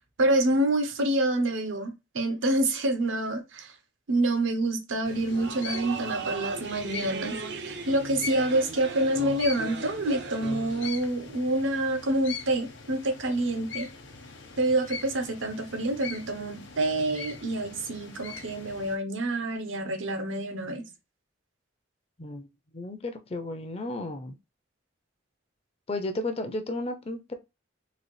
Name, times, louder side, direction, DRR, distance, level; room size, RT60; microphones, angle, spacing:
voice 1, 0.2-3.7 4.1-7.4 7.6-13.9 14.6-20.9, right 1 dB, 90° right, 0.9 m, -27 dB
sound 1, 5.0-19.0, left 5 dB, 70° left, 0.8 m, -42 dB
sound 2, 5.1-10.9, right 4 dB, 60° right, 0.5 m, -37 dB
voice 2, 22.7-24.4 25.9-27.3, left 2 dB, 30° left, 0.5 m, -33 dB
3.9 x 2.4 x 3.1 m
head